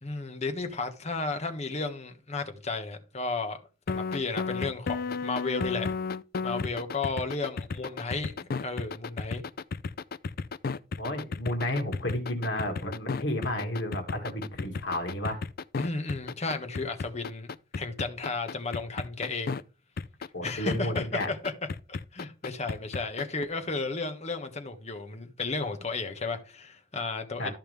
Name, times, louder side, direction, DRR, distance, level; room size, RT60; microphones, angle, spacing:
voice 1, 0.0-3.6 3.9-5.9 6.4-9.4 15.8-19.6 20.4-21.5 21.9-27.5, left 3 dB, 35° left, 1.5 m, -33 dB
sound 1, 3.9-19.6 20.0-23.4, left 4 dB, 50° left, 0.4 m, -33 dB
voice 2, 11.0-15.4 20.3-21.3 27.4-27.5, left 1 dB, 70° left, 2.4 m, -32 dB
13.5 x 5.7 x 3.5 m
head